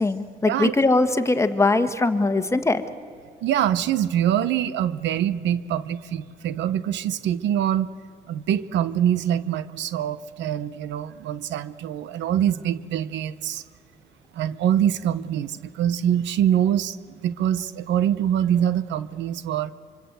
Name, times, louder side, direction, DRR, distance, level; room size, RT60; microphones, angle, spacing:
voice 1, 0.0-2.8, left 3 dB, 15° left, 9 dB, 1.5 m, -21 dB
voice 2, 3.4-7.9 8.3-13.6 14.3-17.0 17.2-19.7, right 10 dB, 85° right, 14 dB, 0.9 m, -24 dB
26.0 x 24.5 x 8.0 m, 2.2 s
cardioid pair, 90°, 18 cm